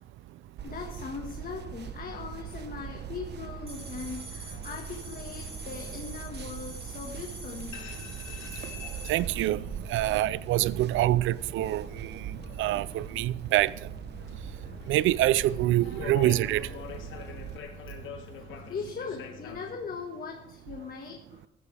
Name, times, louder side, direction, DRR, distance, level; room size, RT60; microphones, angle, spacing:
voice 1, 0.6-7.8 16.1-16.5 18.2-18.3 18.7-21.5, left 5 dB, 50° left, 1.6 m, -40 dB
sound 1, 0.6-17.6, right 7 dB, 60° right, 1.1 m, -41 dB
sound 2, 3.6-19.8, left 6 dB, 75° left, 1.8 m, -47 dB
data stream, 3.7-9.2, right 2 dB, 30° right, 3.7 m, -45 dB
voice 2, 9.1-12.2 12.6-13.7 14.9-16.7, right 14 dB, 80° right, 0.5 m, -26 dB
15.0 x 12.0 x 3.4 m
cardioid pair, 90°, 20 cm